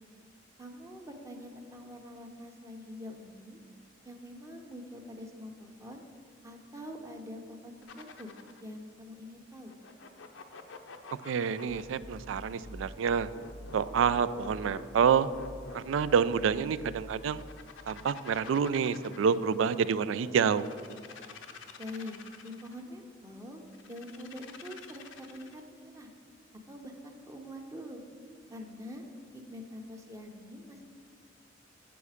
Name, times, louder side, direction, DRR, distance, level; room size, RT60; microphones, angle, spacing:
voice 1, 0.6-3.6 4.0-6.0 6.4-8.3 8.6-9.7 21.8-26.1 26.7-28.0 28.5-29.0 29.3-30.8, left 1 dB, 15° right, 3 dB, 0.7 m, -45 dB
sound 1, 7.8-8.7 9.7-12.1 13.0-16.4 17.2-19.5 20.3-22.8 23.7-25.6, left 5 dB, 80° left, 0.6 m, -48 dB
voice 2, 11.2-13.3 13.7-15.3 15.7-17.4 17.9-20.7, right 7 dB, 85° right, 15 dB, 0.3 m, -28 dB
sound 2, 11.7-18.8, equal, 15° left, 0.4 m, -48 dB
8.1 x 6.9 x 4.9 m, 2.2 s
head